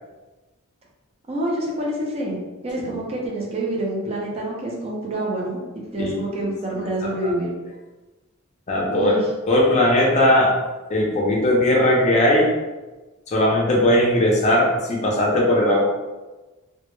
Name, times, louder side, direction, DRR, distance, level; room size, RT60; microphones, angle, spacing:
voice 1, 1.3-7.5 8.9-9.3, right 1 dB, 30° right, -3 dB, 0.4 m, -27 dB
voice 2, 7.0-7.3 8.7-9.2 9.5-10.6 10.9-12.5 13.3-15.8, left 1 dB, 35° left, -2 dB, 0.4 m, -18 dB
2.1 x 2.0 x 3.0 m, 1.2 s
head